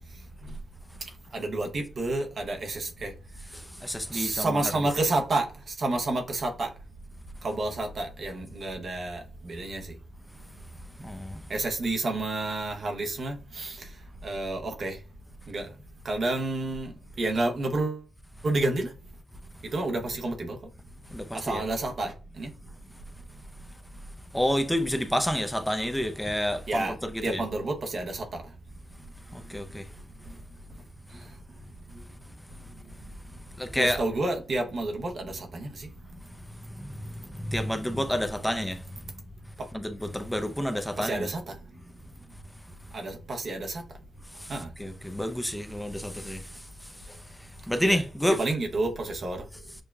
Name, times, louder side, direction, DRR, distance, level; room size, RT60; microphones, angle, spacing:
voice 1, 1.3-3.1 4.1-6.7 7.4-9.9 11.5-13.8 14.2-15.0 15.5-15.7 16.0-16.9 17.2-18.0 18.4-18.9 19.7-20.6 21.3-22.5 26.7-26.9 27.2-28.4 33.8-35.9 41.0-41.5 42.9-43.8 44.5-44.7 47.8-48.0 48.4-49.4, right 2 dB, 65° right, 0.8 m, -30 dB
voice 2, 3.5-4.6 11.0-11.4 21.1-21.6 24.3-27.4 29.3-29.9 33.5-34.0 36.3-39.0 39.7-41.3 44.3-44.5 44.8-48.4, equal, 5° left, 0.6 m, -30 dB
6.3 x 2.2 x 2.3 m
supercardioid pair, 40°, 0 cm